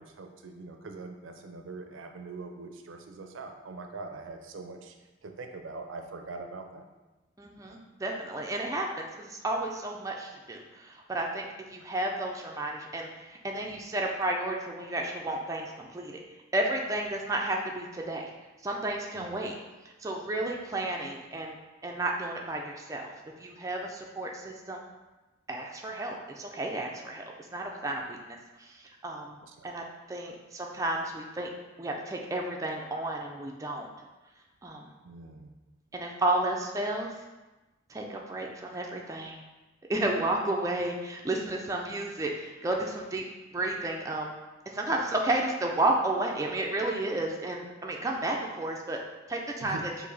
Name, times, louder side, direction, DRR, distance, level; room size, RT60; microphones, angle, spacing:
voice 1, 0.0-4.9 5.2-6.9 19.1-19.4 29.4-29.7 35.0-35.5 49.6-49.8, right 3 dB, 90° right, 5 dB, 0.5 m, -42 dB
voice 2, 7.4-16.2 16.5-18.3 18.6-19.5 20.0-21.5 21.8-23.1 23.4-24.8 25.5-27.2 27.5-28.2 28.6-28.7 29.0-29.4 29.6-31.5 31.8-33.9 34.6-34.9 35.9-37.1 37.9-39.4 39.9-43.2 43.5-44.3 44.7-49.0 49.3-49.8, right 2 dB, 15° right, 0 dB, 0.4 m, -32 dB
4.8 x 2.6 x 4.0 m, 1.1 s
head